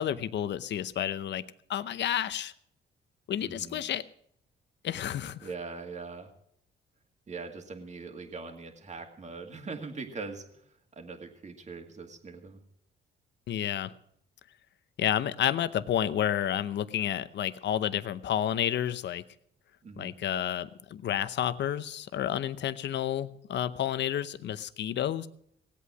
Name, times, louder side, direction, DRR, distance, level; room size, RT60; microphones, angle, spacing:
voice 1, 0.0-1.4 1.7-2.5 3.3-4.0 4.8-5.5 13.5-13.9 15.0-19.2 20.0-25.3, left 10 dB, 65° left, 14 dB, 0.8 m, -30 dB
voice 2, 3.4-3.8 5.4-6.3 7.3-12.6 19.8-20.2, right 4 dB, 35° right, 4 dB, 2.1 m, -42 dB
18.0 x 8.5 x 6.2 m, 0.71 s
cardioid pair, 90°, 20 cm